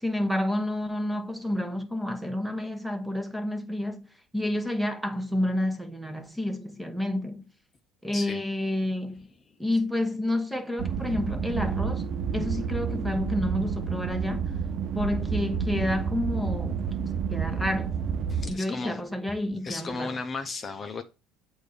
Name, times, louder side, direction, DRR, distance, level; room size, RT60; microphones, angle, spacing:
voice 1, 0.0-4.1 4.3-7.4 8.0-9.3 9.6-12.0 12.3-14.5 14.9-16.9 17.3-18.0 18.5-20.1, left 1 dB, 5° right, 1.0 m, -29 dB
voice 2, 8.1-8.5 18.3-19.1 19.6-21.0, left 4 dB, 35° left, 0.7 m, -35 dB
sound 1, 10.8-18.5, right 6 dB, 50° right, 0.6 m, -30 dB
7.6 x 2.7 x 5.0 m
supercardioid pair, 85°, 0 cm